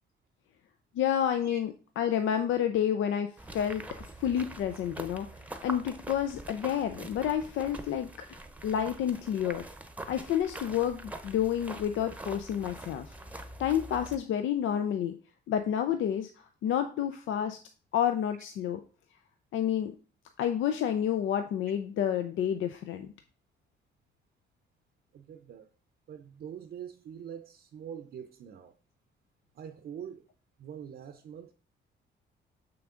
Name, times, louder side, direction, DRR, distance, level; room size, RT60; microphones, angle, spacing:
voice 1, 0.9-5.3 5.6-9.6 10.1-13.1 13.6-15.1 15.5-17.6 17.9-18.8 19.5-19.9 20.4-23.1, left 9 dB, 75° left, 0.5 m, -29 dB
sound 1, 3.4-14.2, right 1 dB, 5° right, 0.8 m, -44 dB
voice 2, 25.1-25.7 26.1-28.7 29.5-30.3 30.6-31.5, right 8 dB, 55° right, 0.6 m, -44 dB
6.2 x 5.9 x 3.7 m
cardioid pair, 90°, 20 cm